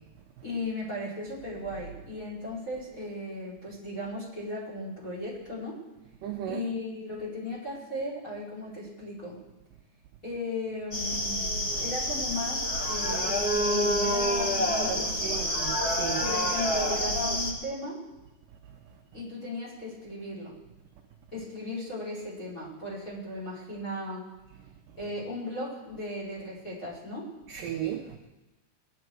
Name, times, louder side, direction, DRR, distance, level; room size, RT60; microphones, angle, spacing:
voice 1, 0.4-5.8 6.4-9.4 10.2-15.5 16.2-18.0 19.1-20.5 21.3-24.3 25.0-27.3, left 2 dB, 20° left, 5.3 m, -36 dB
voice 2, 6.2-6.6 11.7-11.8 14.9-16.2 27.5-28.2, right 10 dB, 75° right, 2.1 m, -35 dB
sound 1, 10.9-17.5, equal, 40° left, 1.4 m, -28 dB
21.0 x 11.0 x 4.7 m
omnidirectional pair, 4.8 m